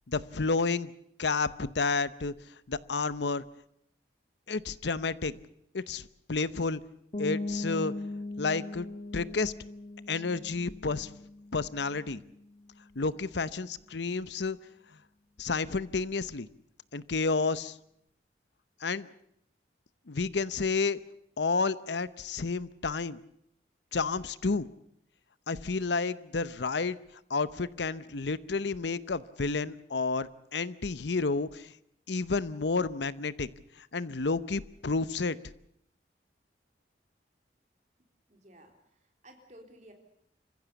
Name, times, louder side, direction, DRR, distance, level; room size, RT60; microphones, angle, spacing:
voice 1, 0.1-0.9 1.2-2.3 2.7-3.4 4.5-5.4 5.7-6.8 7.2-7.9 8.4-8.9 9.1-9.5 10.1-11.1 11.5-12.2 13.0-14.6 15.4-16.5 16.9-17.8 18.8-19.1 20.1-21.0 21.4-23.2 23.9-24.7 25.5-27.0 27.3-31.7 32.1-33.5 33.8-35.4, left 4 dB, 75° left, 16 dB, 0.8 m, -30 dB
sound 1, 7.1-12.7, left 2 dB, 35° left, 2.0 m, -39 dB
voice 2, 38.3-39.9, right 1 dB, 40° right, 4 dB, 3.7 m, -55 dB
27.5 x 15.5 x 8.2 m, 0.73 s
head